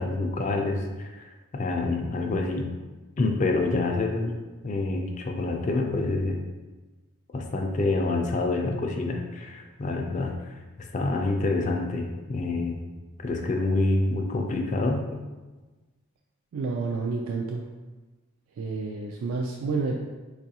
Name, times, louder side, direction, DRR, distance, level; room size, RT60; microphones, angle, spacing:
voice 1, 0.0-2.7 3.2-4.4 4.6-6.4 7.3-12.8 13.2-15.1, left 2 dB, 35° left, 2 dB, 0.3 m, -27 dB
voice 2, 16.5-17.6 18.6-20.0, right 4 dB, 70° right, 0 dB, 0.3 m, -29 dB
4.6 x 2.4 x 2.8 m, 1.2 s
head